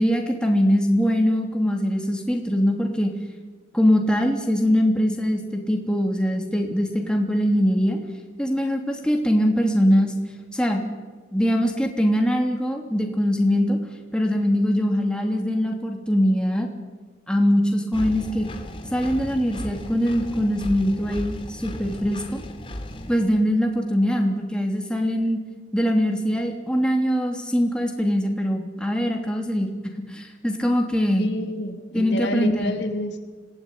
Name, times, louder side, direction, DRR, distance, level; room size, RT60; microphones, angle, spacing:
voice 1, 0.0-3.1 3.7-8.0 8.4-10.1 10.5-10.9 11.3-13.8 14.1-16.7 17.3-18.5 18.9-22.4 23.1-25.4 25.7-29.7 30.1-31.3 31.9-32.7, equal, 5° left, 1 dB, 3.1 m, -22 dB
Engine, 17.9-23.2, left 1 dB, 30° left, 2.6 m, -35 dB
voice 2, 31.1-33.2, left 1 dB, 75° left, 5 dB, 2.9 m, -28 dB
26.5 x 18.0 x 9.8 m, 1.4 s
head